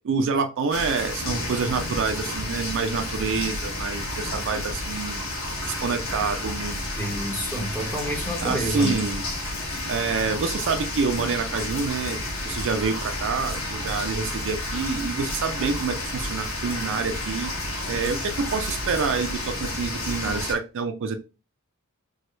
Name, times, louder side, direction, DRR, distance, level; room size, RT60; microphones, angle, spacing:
voice 1, 0.0-5.2 5.7-6.8 8.4-9.3 9.9-12.2 12.4-17.5 17.9-21.2, right 5 dB, 60° right, 7 dB, 0.4 m, -27 dB
sound 1, 0.7-20.5, left 1 dB, 60° left, 0.9 m, -31 dB
voice 2, 7.0-9.0, equal, 10° left, -2 dB, 0.9 m, -29 dB
3.0 x 2.3 x 3.1 m, 0.31 s
head